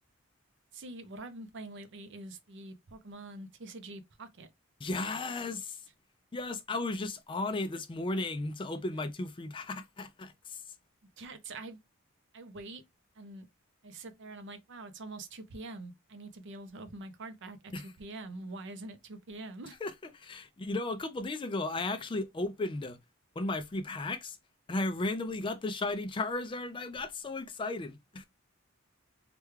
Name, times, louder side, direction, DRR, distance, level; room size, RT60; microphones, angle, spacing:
voice 1, 0.7-4.5 5.0-5.2 11.2-11.8 12.3-12.8 13.2-13.5 13.8-19.8, right 2 dB, 60° right, 0.6 m, -45 dB
voice 2, 4.8-5.8 6.3-10.6 17.7-17.9 19.8-23.0 23.4-24.4 24.7-28.3, left 2 dB, 25° left, 0.4 m, -35 dB
3.3 x 2.3 x 3.1 m
head